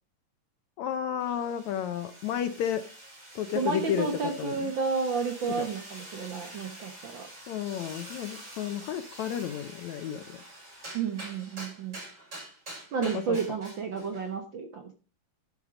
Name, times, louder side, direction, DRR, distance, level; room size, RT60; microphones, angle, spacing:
voice 1, 0.8-2.9 3.4-4.7 5.6-5.7 7.5-10.4 13.0-13.4, left 9 dB, 75° left, 9 dB, 1.8 m, -32 dB
sound 1, 1.2-14.3, right 1 dB, 20° right, 7.0 m, -46 dB
voice 2, 3.5-7.3 10.9-12.0 12.9-14.9, right 5 dB, 85° right, 5 dB, 1.0 m, -31 dB
11.5 x 7.3 x 5.0 m, 0.35 s
omnidirectional pair, 3.8 m